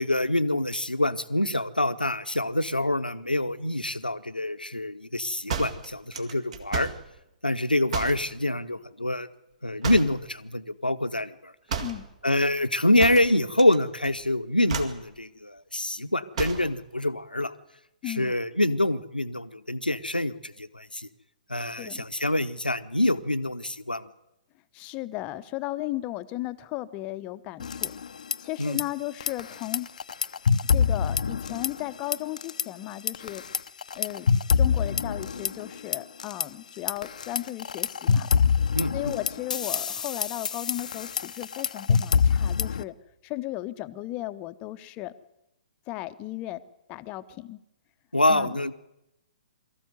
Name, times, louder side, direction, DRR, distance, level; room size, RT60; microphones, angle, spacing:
voice 1, 0.0-6.9 7.4-9.3 9.6-11.5 12.2-17.5 18.1-21.1 21.5-24.1 28.6-28.8 38.7-39.2 48.1-48.7, left 1 dB, 85° left, 11 dB, 1.1 m, -26 dB
sound 1, 5.5-7.1 7.9-8.3 9.8-10.3 11.7-12.1 13.0-13.8 14.0-14.3 14.7-15.0 16.3-16.7, right 6 dB, 45° right, 2.3 m, -32 dB
voice 2, 18.0-18.3 21.8-22.0 24.7-28.0 28.4-29.9 30.7-33.4 33.9-34.3 34.6-38.3 38.9-42.9 43.2-45.1 45.9-46.6 46.9-47.6 48.3-48.6, left 16 dB, 25° left, 13 dB, 0.9 m, -35 dB
sound 2, 27.6-28.4 28.6-28.8 29.2-31.9 32.1-32.6 33.1-36.4 36.9-42.8, left 6 dB, 60° left, 0.7 m, -25 dB
23.0 x 14.0 x 9.5 m, 0.88 s
figure-of-eight pair, 125°, 5 cm